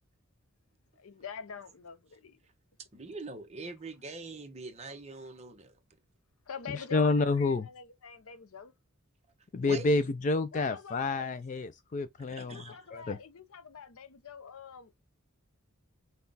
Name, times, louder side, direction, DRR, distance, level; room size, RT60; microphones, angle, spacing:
voice 1, 1.0-2.4 6.5-8.7 10.5-11.4 12.3-15.1, left 7 dB, 75° left, 0.6 m, -45 dB
voice 2, 2.9-5.8 9.6-9.9 12.3-12.9, right 3 dB, 30° right, 0.9 m, -43 dB
voice 3, 6.9-7.7 9.5-13.2, left 3 dB, 35° left, 0.3 m, -29 dB
5.7 x 2.3 x 3.9 m
head